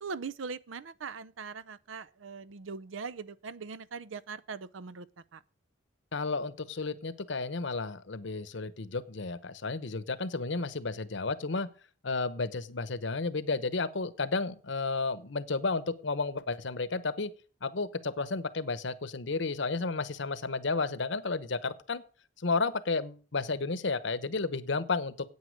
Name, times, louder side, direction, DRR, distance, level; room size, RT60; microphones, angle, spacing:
voice 1, 0.0-5.1 5.3-5.4, right 5 dB, 80° right, 0.6 m, -41 dB
voice 2, 6.1-11.7 12.0-17.3 17.6-22.0 22.4-25.1, left 3 dB, 65° left, 0.9 m, -32 dB
9.5 x 8.8 x 6.5 m
head